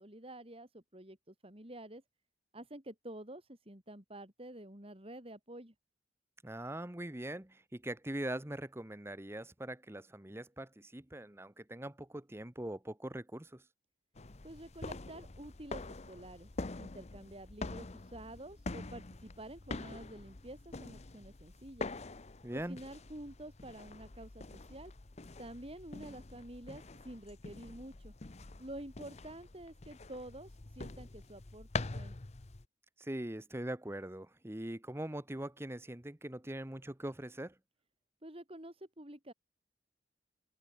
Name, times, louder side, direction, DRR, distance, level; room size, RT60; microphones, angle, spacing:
voice 1, 0.0-2.0 2.5-5.7 14.4-16.5 16.8-21.9 22.5-24.9 25.4-28.1 28.6-31.7 31.9-32.2 38.2-39.3, right 1 dB, 30° right, 4.5 m, -49 dB
voice 2, 6.4-13.6 22.4-22.8 33.0-37.5, right 1 dB, 15° right, 1.0 m, -42 dB
sound 1, 14.2-32.7, left 3 dB, 40° left, 0.8 m, -45 dB
head